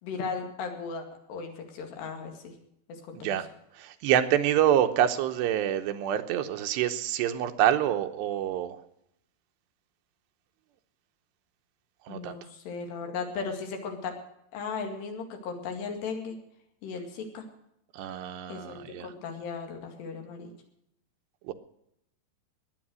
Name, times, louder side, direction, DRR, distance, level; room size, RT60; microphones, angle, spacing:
voice 1, 0.0-2.5 3.1-3.4 12.1-14.2 14.5-16.4 16.8-17.4 18.5-20.5, left 5 dB, 75° left, 3 dB, 4.3 m, -36 dB
voice 2, 3.1-3.5 3.8-8.8 12.1-12.4 17.9-19.1 21.5-21.6, right 10 dB, 80° right, 8 dB, 3.1 m, -26 dB
19.5 x 9.7 x 6.3 m, 0.77 s
omnidirectional pair, 4.9 m